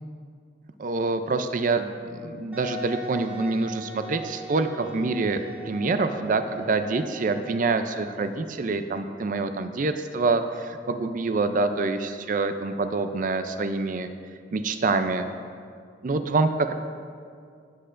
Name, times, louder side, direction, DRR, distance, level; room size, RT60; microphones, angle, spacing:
voice 1, 0.8-1.9 2.2-14.1 14.5-15.3 16.0-16.7, right 3 dB, 45° right, 9 dB, 0.4 m, -26 dB
Wind instrument woodwind instrument, 2.5-8.1, right 2 dB, 10° right, 1.2 m, -40 dB
16.5 x 7.8 x 2.5 m, 2.2 s
head